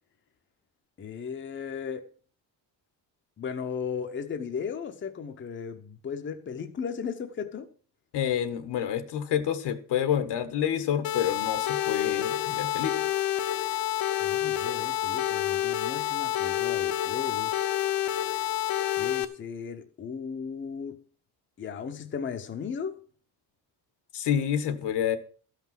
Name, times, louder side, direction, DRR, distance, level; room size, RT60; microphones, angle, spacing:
voice 1, 1.0-2.1 3.4-7.7 14.2-17.6 19.0-21.0 21.6-23.0, left 6 dB, 30° left, 0.8 m, -36 dB
voice 2, 8.1-13.1 24.1-25.2, left 9 dB, 75° left, 1.6 m, -28 dB
sound 1, 11.0-19.2, left 12 dB, 60° left, 1.0 m, -28 dB
13.0 x 5.9 x 7.4 m
cardioid pair, 160°, 41 cm